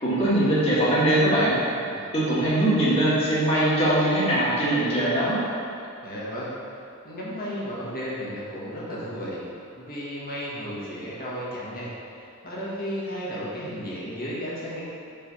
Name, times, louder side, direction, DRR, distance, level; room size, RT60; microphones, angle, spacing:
voice 1, 0.0-1.6 2.1-5.4, right 1 dB, 25° left, -9 dB, 1.5 m, -21 dB
voice 2, 6.0-6.5 7.0-9.4 9.7-11.9 12.2-14.8, equal, 45° left, -7 dB, 1.3 m, -34 dB
5.5 x 3.3 x 5.6 m, 2.6 s
head